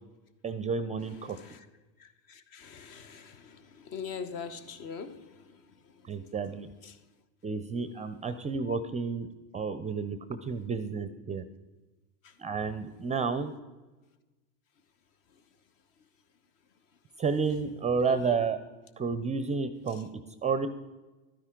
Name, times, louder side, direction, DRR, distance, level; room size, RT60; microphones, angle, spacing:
voice 1, 0.4-1.4 6.1-6.7 7.4-9.3 9.5-11.4 12.4-13.5 17.2-18.6 19.0-20.1 20.4-20.7, right 5 dB, 15° right, 0.4 m, -31 dB
voice 2, 1.3-1.7 2.0-6.1 6.8-7.0 12.2-12.3 18.1-18.4, left 6 dB, 50° left, 1.0 m, -43 dB
12.0 x 9.8 x 3.7 m
hypercardioid pair, 95°, 42 cm